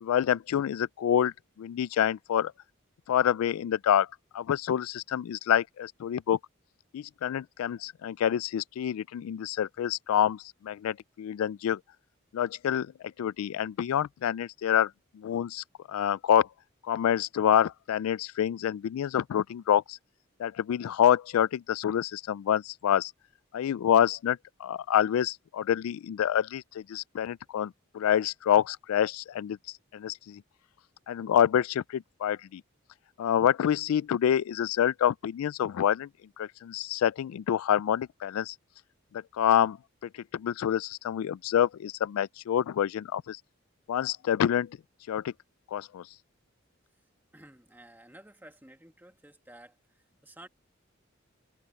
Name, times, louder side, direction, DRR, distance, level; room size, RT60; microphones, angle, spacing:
voice 1, 0.0-2.5 3.1-4.1 4.3-6.4 6.9-11.8 12.3-16.5 16.8-20.0 20.4-23.1 23.5-29.6 29.9-30.4 31.1-32.6 33.2-36.1 36.4-38.6 39.1-39.8 40.0-43.4 43.9-44.8 45.1-45.3 45.7-46.1, left 9 dB, 90° left, 0.3 m, -27 dB
voice 2, 47.3-50.5, right 1 dB, 10° right, 1.9 m, -53 dB
head